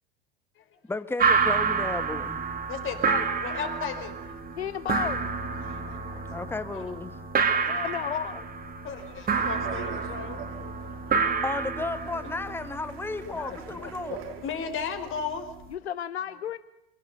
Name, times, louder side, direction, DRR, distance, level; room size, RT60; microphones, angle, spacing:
voice 1, 0.8-2.4 6.1-7.2 11.4-14.2, left 3 dB, 5° left, 12 dB, 1.4 m, -33 dB
sound 1, 1.2-15.7, right 5 dB, 30° right, 3.1 m, -29 dB
voice 2, 2.7-4.1 5.6-6.0 6.7-6.9 8.8-11.3 13.2-15.5, left 6 dB, 40° left, 7 dB, 4.5 m, -36 dB
voice 3, 4.6-5.3 5.8-6.2 7.7-8.5 15.7-16.6, left 9 dB, 85° left, 15 dB, 0.7 m, -33 dB
Speech, 9.0-14.8, right 10 dB, 70° right, 2.8 m, -45 dB
26.5 x 18.0 x 6.9 m, 0.91 s
hypercardioid pair, 80°, 32 cm